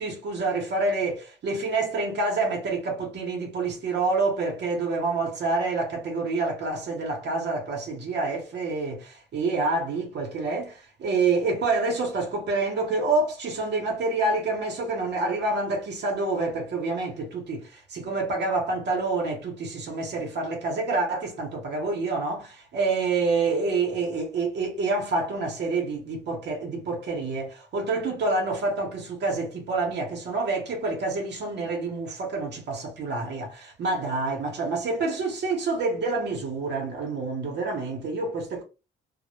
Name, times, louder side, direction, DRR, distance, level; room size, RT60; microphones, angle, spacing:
voice 1, 0.0-38.6, right 3 dB, 60° right, 0.8 m, -27 dB
2.1 x 2.0 x 3.0 m
cardioid pair, 90°, 20 cm